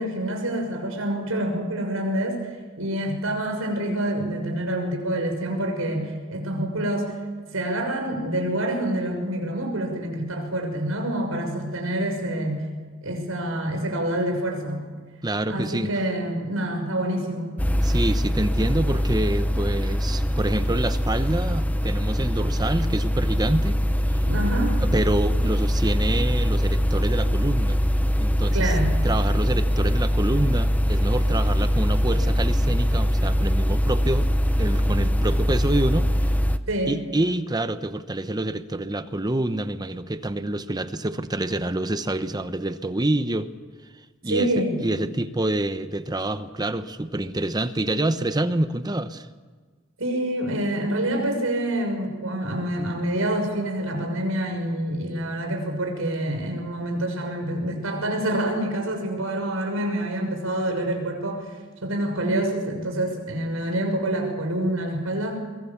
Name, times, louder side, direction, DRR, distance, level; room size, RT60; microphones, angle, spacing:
voice 1, 0.0-2.5 2.8-7.2 7.5-12.7 13.0-14.9 15.5-17.6 24.2-24.7 28.5-28.9 36.7-37.0 44.3-44.8 50.0-61.5 61.8-65.4, right 1 dB, 85° right, 3 dB, 6.4 m, -27 dB
voice 2, 15.2-15.9 17.8-23.8 24.1-24.2 24.8-27.8 28.2-28.8 29.0-34.3 34.6-36.1 36.9-43.5 44.2-49.3, right 1 dB, 20° right, 11 dB, 0.9 m, -27 dB
sound 1, 17.6-36.6, equal, 5° left, 0.8 m, -22 dB
23.0 x 22.5 x 7.4 m, 1.4 s
head